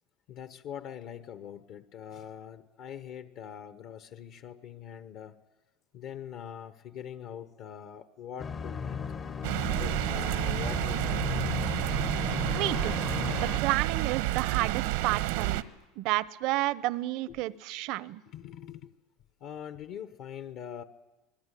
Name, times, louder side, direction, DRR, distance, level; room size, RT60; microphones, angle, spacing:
voice 1, 0.3-5.3 5.9-9.0 9.8-11.2 13.3-13.4 14.6-14.7 17.3-17.4 18.3-18.9 19.4-20.8, left 9 dB, 50° left, 11 dB, 1.1 m, -43 dB
sound 1, 8.4-13.6, left 5 dB, 25° left, 0.9 m, -35 dB
sound 2, 9.4-15.6, right 15 dB, 80° right, 1.3 m, -30 dB
voice 2, 12.5-12.9 13.3-15.6 16.0-18.2, right 17 dB, 60° right, 19 dB, 0.8 m, -31 dB
27.5 x 20.5 x 10.0 m, 1.1 s
supercardioid pair, 145°, 0 cm